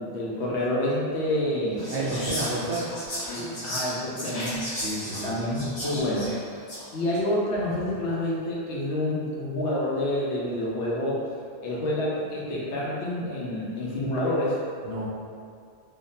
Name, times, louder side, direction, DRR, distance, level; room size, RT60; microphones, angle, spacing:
voice 1, 0.0-1.9 3.3-4.6 5.2-6.4 6.9-11.2 11.6-14.6, left 1 dB, 75° left, -5 dB, 1.0 m, -28 dB
Whispering, 1.8-6.9, left 1 dB, 50° left, 0.9 m, -35 dB
voice 2, 1.9-2.9 4.8-5.3 14.8-15.1, right 2 dB, 75° right, -5 dB, 1.0 m, -30 dB
3.5 x 2.1 x 2.6 m, 2.2 s
omnidirectional pair, 1.2 m